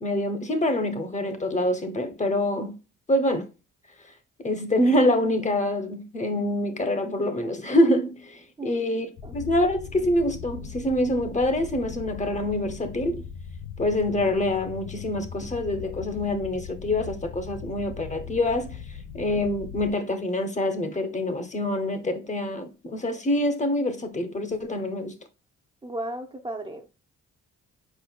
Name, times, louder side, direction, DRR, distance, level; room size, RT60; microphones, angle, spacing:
voice 1, 0.0-2.7 3.1-3.5 4.4-13.2 13.8-18.8 19.1-25.1, left 1 dB, 25° left, 0.9 m, -25 dB
sound 1, 9.2-19.9, left 7 dB, 75° left, 0.7 m, -39 dB
voice 2, 25.8-26.9, right 1 dB, 15° right, 0.7 m, -35 dB
4.8 x 4.5 x 2.2 m
cardioid pair, 90°, 30 cm